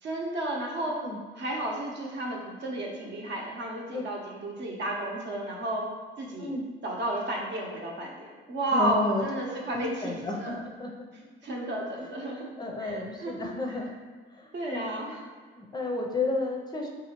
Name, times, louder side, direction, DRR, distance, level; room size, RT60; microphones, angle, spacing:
voice 1, 0.0-1.0 1.4-5.8 6.2-6.5 6.8-8.2 8.5-10.6 11.4-12.5 12.8-13.5 14.5-15.3, right 1 dB, 65° right, -2 dB, 0.8 m, -32 dB
voice 2, 8.7-9.2 9.7-10.9 12.6-13.9 14.3-15.0 15.6-16.9, left 2 dB, 20° left, 0 dB, 0.4 m, -32 dB
3.8 x 2.7 x 2.9 m, 1.4 s
cardioid pair, 90°, 20 cm